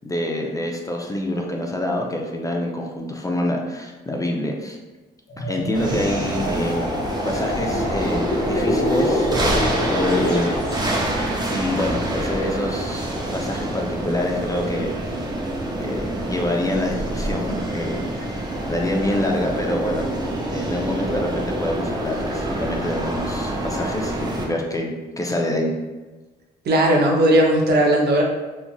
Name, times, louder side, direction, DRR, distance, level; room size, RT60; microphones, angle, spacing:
voice 1, 0.0-4.8 5.4-6.8 7.2-9.5 9.8-10.8 11.5-15.2 15.8-18.4 18.7-20.1 20.5-25.7, left 1 dB, 20° left, 0 dB, 0.4 m, -26 dB
sound 1, 5.3-11.1, left 1 dB, 65° left, 0.7 m, -26 dB
sound 2, 5.7-24.4, right 1 dB, 25° right, 0.7 m, -26 dB
voice 2, 26.6-28.2, right 1 dB, 65° right, -1 dB, 0.7 m, -17 dB
3.1 x 2.4 x 2.3 m, 1.2 s
cardioid pair, 65°, 18 cm